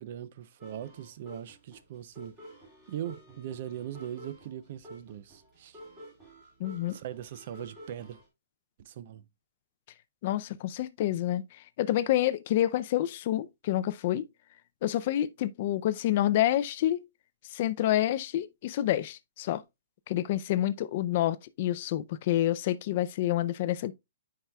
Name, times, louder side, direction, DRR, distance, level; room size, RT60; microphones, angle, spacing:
voice 1, 0.0-2.4 2.9-5.8 6.9-8.2 8.8-9.3, right 10 dB, 35° right, 0.4 m, -40 dB
sound 1, 0.6-8.3, equal, 10° right, 2.3 m, -51 dB
voice 2, 6.6-7.0 10.2-14.2 14.8-17.0 17.5-19.6 20.1-23.9, left 13 dB, 30° left, 0.4 m, -28 dB
9.8 x 4.7 x 2.2 m
hypercardioid pair, 180°, 0 cm